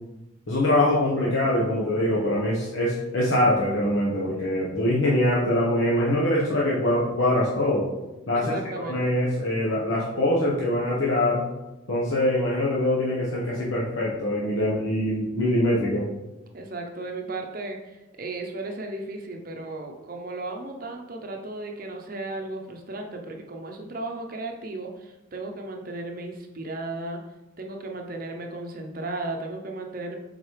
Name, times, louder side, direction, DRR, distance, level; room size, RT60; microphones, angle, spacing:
voice 1, 0.5-7.9 8.3-11.4 11.9-16.1, left 1 dB, 75° left, -5 dB, 1.1 m, -23 dB
voice 2, 8.3-9.2 16.5-27.2 27.6-30.2, right 2 dB, 45° right, 2 dB, 0.7 m, -35 dB
7.8 x 4.0 x 3.2 m, 1.0 s
head